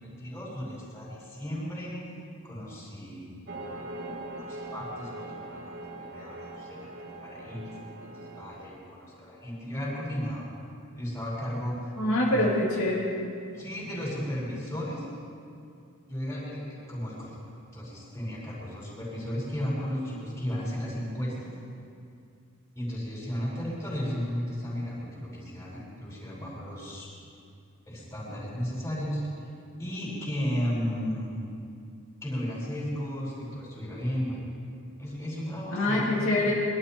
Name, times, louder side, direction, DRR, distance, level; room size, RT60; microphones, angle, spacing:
voice 1, 0.0-1.9 2.4-3.3 4.4-10.4 10.9-11.9 12.3-12.5 13.5-15.0 16.1-21.5 22.8-27.1 27.9-29.2 29.8-31.4 32.2-34.5 35.0-36.5, equal, 15° left, -6 dB, 5.2 m, -34 dB
sound 1, 3.5-8.7, right 2 dB, 50° right, 1.4 m, -41 dB
voice 2, 12.0-13.1 35.7-36.5, left 1 dB, 70° left, -5 dB, 2.5 m, -25 dB
23.0 x 12.5 x 4.5 m, 2.4 s
head